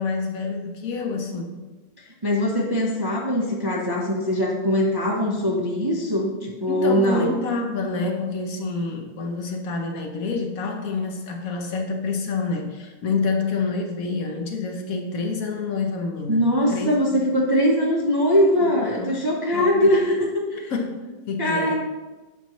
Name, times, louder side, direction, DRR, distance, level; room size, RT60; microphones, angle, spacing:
voice 1, 0.0-1.6 6.7-17.2 18.9-19.2 19.5-19.9 20.7-21.7, left 4 dB, 60° left, 3 dB, 1.1 m, -28 dB
voice 2, 2.2-7.3 16.3-20.7 21.4-21.7, equal, 25° right, -2 dB, 0.5 m, -21 dB
8.2 x 5.8 x 3.0 m, 1.2 s
omnidirectional pair, 1.8 m